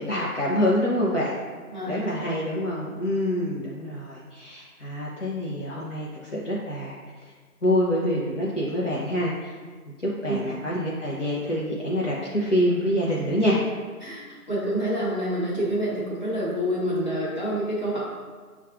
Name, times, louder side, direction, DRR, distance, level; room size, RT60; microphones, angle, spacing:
voice 1, 0.0-1.3 1.9-7.0 7.6-9.5 10.0-13.6, equal, 55° left, -6 dB, 0.6 m, -26 dB
voice 2, 1.7-2.3 10.3-10.4 14.0-14.2 14.5-18.0, equal, 30° left, -9 dB, 1.0 m, -27 dB
6.2 x 2.3 x 2.3 m, 1.5 s
figure-of-eight pair, 160°, 46 cm